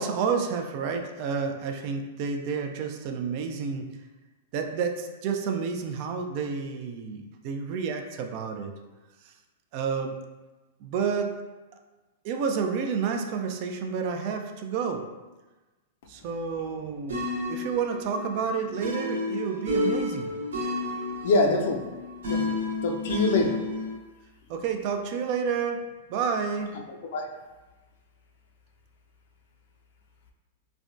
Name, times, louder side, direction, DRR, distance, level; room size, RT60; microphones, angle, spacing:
voice 1, 0.0-4.0 4.5-8.7 9.7-10.2 10.8-11.4 12.2-15.1 16.1-20.3 24.5-26.7, right 6 dB, 50° right, 5 dB, 0.3 m, -30 dB
sound 1, 17.1-23.9, left 2 dB, 85° right, 0.9 m, -31 dB
voice 2, 21.2-21.9 22.3-22.6 22.8-23.6 26.9-27.3, left 3 dB, 65° left, 2 dB, 0.4 m, -24 dB
3.3 x 2.1 x 2.5 m, 1.2 s
hypercardioid pair, 120°, 0 cm